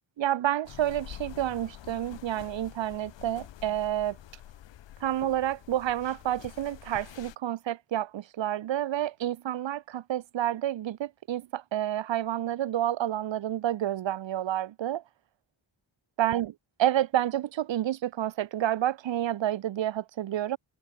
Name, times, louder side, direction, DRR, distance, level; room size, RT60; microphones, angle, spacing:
voice 1, 0.2-4.2 5.0-15.0 16.2-16.5 16.8-20.6, right 12 dB, 60° right, 0.6 m, -29 dB
sound 1, 0.6-7.4, left 12 dB, 60° left, 0.6 m, -47 dB
wide cardioid pair, 100°, 50 cm